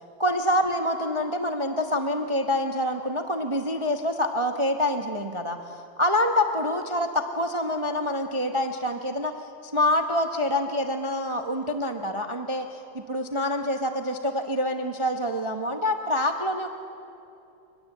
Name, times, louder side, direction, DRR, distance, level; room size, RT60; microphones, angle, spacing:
voice 1, 0.2-16.7, left 1 dB, 25° right, 4 dB, 0.6 m, -26 dB
24.5 x 20.0 x 8.0 m, 2.7 s
omnidirectional pair, 2.3 m